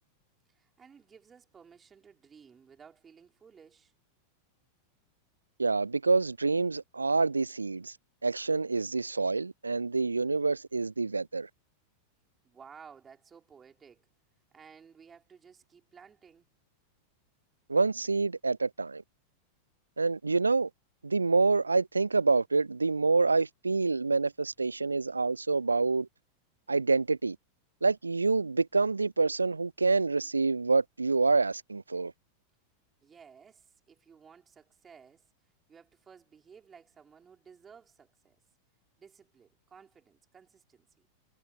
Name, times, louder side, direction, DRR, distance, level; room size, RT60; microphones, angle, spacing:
voice 1, 0.5-3.9 12.4-14.1 14.5-16.5 33.0-35.3 35.7-38.4 39.0-41.1, right 6 dB, 20° right, 5.0 m, -55 dB
voice 2, 5.6-8.0 8.2-11.5 17.7-19.0 20.0-20.7 21.0-26.1 26.7-27.4 27.8-32.1, right 3 dB, 80° right, 0.4 m, -27 dB
figure-of-eight pair, 90°, 0 cm